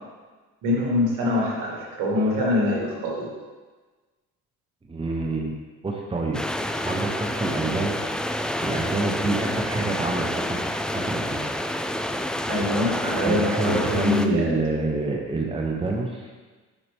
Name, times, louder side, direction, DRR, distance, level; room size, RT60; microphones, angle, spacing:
voice 1, 0.6-3.3 12.4-14.5, left 2 dB, 90° right, -3 dB, 2.0 m, -24 dB
voice 2, 4.9-5.5 5.8-6.4 6.8-8.2 8.6-11.5 13.3-16.3, right 3 dB, 15° right, 0 dB, 0.9 m, -27 dB
sound 1, 6.3-14.3, left 1 dB, 5° left, 0.3 m, -28 dB
7.1 x 5.8 x 3.5 m, 1.3 s
cardioid pair, 80°, 33 cm